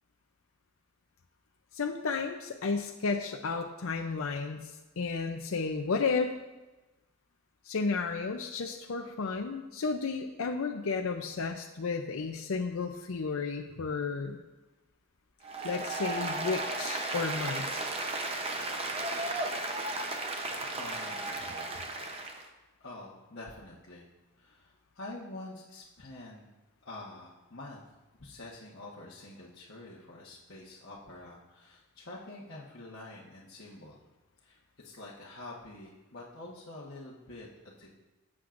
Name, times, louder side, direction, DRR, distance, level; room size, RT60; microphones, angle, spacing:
voice 1, 1.7-6.3 7.6-14.4 15.6-17.8, left 4 dB, 75° left, 3 dB, 0.6 m, -33 dB
Applause, 15.4-22.5, right 2 dB, 25° right, 0.7 m, -34 dB
voice 2, 20.8-21.7 22.8-24.0 24.4-26.4 26.8-27.8 28.2-34.0 34.4-38.0, left 2 dB, 60° left, -7 dB, 1.2 m, -47 dB
16.0 x 7.5 x 2.5 m, 1.1 s
head